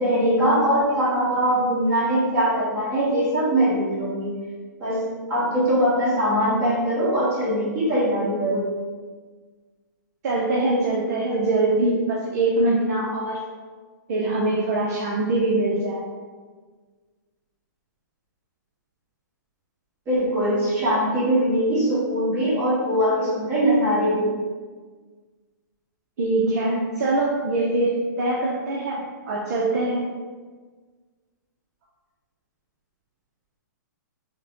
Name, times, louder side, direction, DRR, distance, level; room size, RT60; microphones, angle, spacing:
voice 1, 0.0-4.3 4.8-8.7 20.1-24.3, equal, 25° right, -9 dB, 1.4 m, -22 dB
voice 2, 10.2-13.4 14.1-16.0 26.2-29.0 29.3-30.0, right 2 dB, 55° right, -4 dB, 0.6 m, -23 dB
4.8 x 2.2 x 2.9 m, 1.4 s
hypercardioid pair, 140°, 11 cm